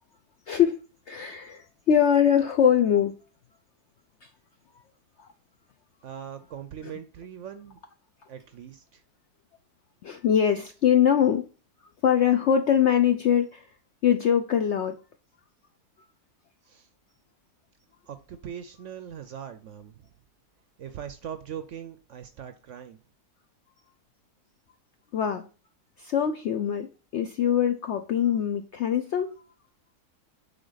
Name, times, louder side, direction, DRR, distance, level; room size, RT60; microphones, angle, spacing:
voice 1, 0.5-0.8 1.1-3.1 4.2-4.3 5.2-5.3 6.8-6.9 10.0-11.5 12.0-13.7 14.0-15.0 25.1-25.5 26.0-29.3, left 9 dB, 70° left, 0.6 m, -23 dB
voice 2, 6.0-7.8 8.3-9.0 16.6-16.9 18.1-20.1 20.8-23.0, right 8 dB, 65° right, 0.8 m, -41 dB
6.9 x 3.7 x 3.9 m
omnidirectional pair, 1.7 m